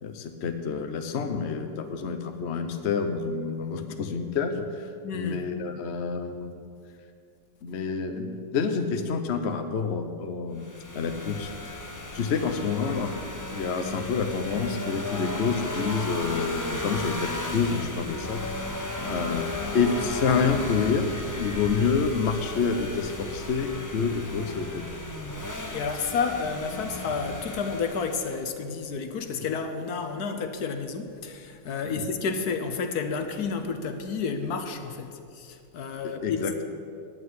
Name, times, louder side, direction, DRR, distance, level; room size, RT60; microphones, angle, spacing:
voice 1, 0.0-6.6 7.6-10.7 10.9-11.7 12.1-13.1 13.4-18.7 19.0-21.1 21.4-24.8 31.8-32.0 36.2-36.6, left 5 dB, 50° left, 7 dB, 0.9 m, -28 dB
voice 2, 5.0-5.5 25.3-36.4, left 5 dB, 65° left, 7 dB, 1.3 m, -31 dB
sound 1, 10.6-28.4, left 1 dB, 20° left, 0.5 m, -35 dB
9.4 x 9.0 x 9.4 m, 2.4 s
omnidirectional pair, 1.9 m